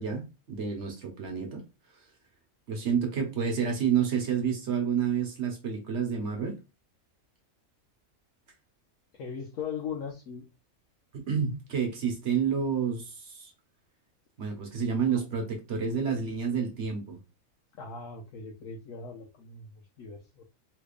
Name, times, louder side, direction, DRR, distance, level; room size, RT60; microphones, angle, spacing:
voice 1, 0.0-1.6 2.7-6.6 11.1-13.5 14.4-17.2, right 7 dB, 60° right, 1.1 m, -29 dB
voice 2, 9.1-10.5 15.1-15.5 17.8-20.4, left 6 dB, 75° left, 1.1 m, -39 dB
3.3 x 3.2 x 2.4 m
omnidirectional pair, 1.5 m